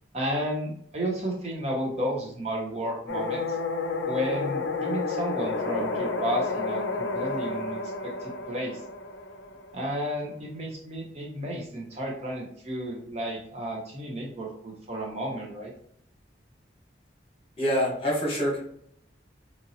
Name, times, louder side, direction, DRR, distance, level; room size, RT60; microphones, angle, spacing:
voice 1, 0.1-3.4 4.0-8.8 9.7-15.7, equal, 35° right, -2 dB, 0.6 m, -32 dB
sound 1, 3.1-10.0, left 3 dB, 80° left, 0.4 m, -31 dB
voice 2, 17.6-18.6, equal, 30° left, -4 dB, 1.1 m, -25 dB
2.8 x 2.7 x 2.6 m, 0.67 s
head